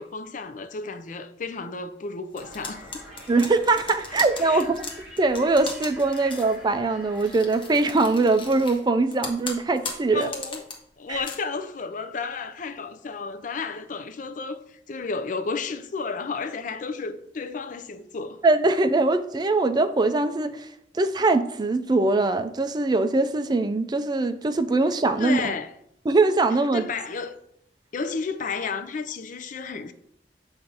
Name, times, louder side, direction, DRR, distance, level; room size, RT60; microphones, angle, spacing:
voice 1, 0.0-2.9 4.4-4.7 6.2-6.3 10.1-10.7 11.0-18.4 25.2-25.7 26.7-27.4 27.9-29.9, left 4 dB, 45° left, 0.4 m, -32 dB
sound 1, 2.3-8.7, right 1 dB, 5° right, 2.4 m, -46 dB
sound 2, 2.4-6.6 7.2-8.8 9.1-10.7 11.1-11.3, left 4 dB, 30° left, 1.0 m, -37 dB
voice 2, 3.3-4.9 5.2-10.3 11.1-11.2 18.4-20.7 20.9-25.5 26.1-26.9, right 3 dB, 25° right, 0.4 m, -22 dB
7.2 x 2.6 x 5.3 m
head